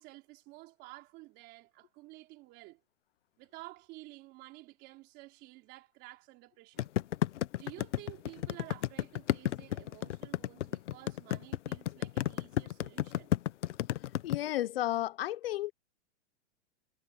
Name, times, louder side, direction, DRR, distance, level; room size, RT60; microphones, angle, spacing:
voice 1, 0.0-2.8 3.4-6.9 7.5-13.3, right 21 dB, 30° right, 4.0 m, -52 dB
sound 1, 6.8-14.4, left 13 dB, 75° left, 1.1 m, -32 dB
voice 2, 14.2-15.7, left 14 dB, 55° left, 0.9 m, -32 dB
supercardioid pair, 170°, 36 cm